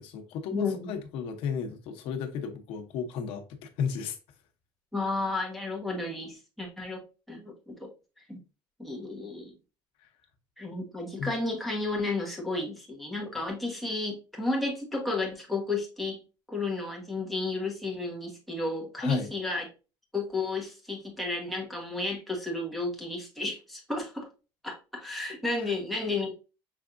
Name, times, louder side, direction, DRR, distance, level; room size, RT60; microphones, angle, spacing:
voice 1, 0.0-4.2 11.2-11.3 19.0-19.3, left 7 dB, 65° left, 0.9 m, -33 dB
voice 2, 0.5-0.9 4.9-7.9 8.3-8.4 8.8-9.5 10.6-19.7 20.1-24.3 24.6-26.3, left 2 dB, ahead, 1.3 m, -32 dB
5.8 x 3.4 x 2.5 m
cardioid pair, 160°, 10 cm